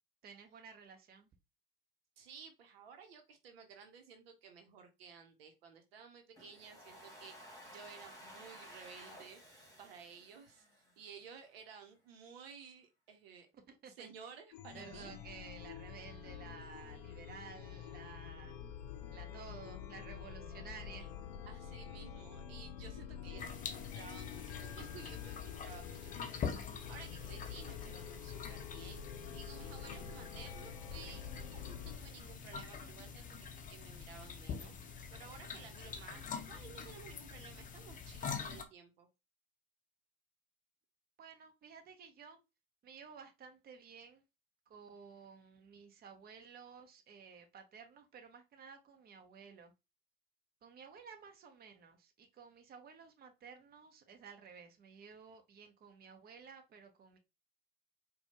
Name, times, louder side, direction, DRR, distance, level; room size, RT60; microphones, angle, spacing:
voice 1, 0.2-1.3 13.7-14.1 14.7-18.6 19.1-21.1 41.2-42.4 42.8-44.2 44.7-49.7 50.6-57.2, right 6 dB, 30° right, 0.9 m, -54 dB
voice 2, 2.2-9.4 9.8-13.5 13.9-15.1 21.0-21.1 21.5-39.1, right 6 dB, 70° right, 0.9 m, -55 dB
Domestic sounds home sounds, 6.4-11.3, equal, 10° left, 1.8 m, -55 dB
Chime, 14.5-32.0, left 8 dB, 65° left, 0.6 m, -48 dB
sound 1, 23.4-38.6, left 6 dB, 25° left, 0.6 m, -45 dB
4.2 x 2.3 x 2.9 m
hypercardioid pair, 80°, 30 cm